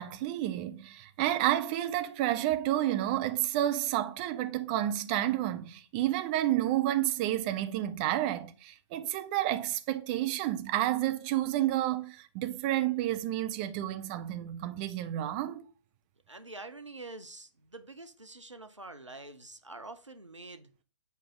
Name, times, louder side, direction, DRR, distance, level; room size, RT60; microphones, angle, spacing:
voice 1, 0.0-15.7, right 13 dB, 20° right, 0.5 m, -30 dB
voice 2, 16.3-20.7, right 2 dB, 90° right, 0.8 m, -46 dB
8.4 x 4.8 x 3.7 m
figure-of-eight pair, 130°, 15 cm